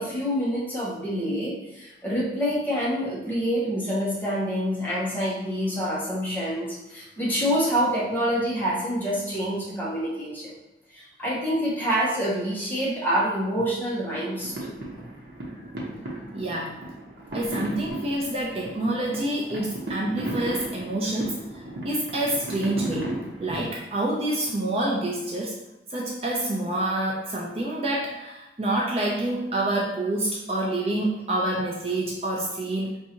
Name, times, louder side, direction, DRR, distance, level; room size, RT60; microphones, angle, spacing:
voice 1, 0.0-10.5 10.9-14.7, equal, 10° left, -6 dB, 0.9 m, -27 dB
sound 1, 14.4-23.7, right 1 dB, 65° right, 0.9 m, -35 dB
voice 2, 16.3-16.8 17.3-21.4 21.8-23.1 23.4-25.6 25.9-32.9, right 1 dB, 35° right, -2 dB, 0.4 m, -27 dB
4.5 x 2.7 x 2.8 m, 0.99 s
head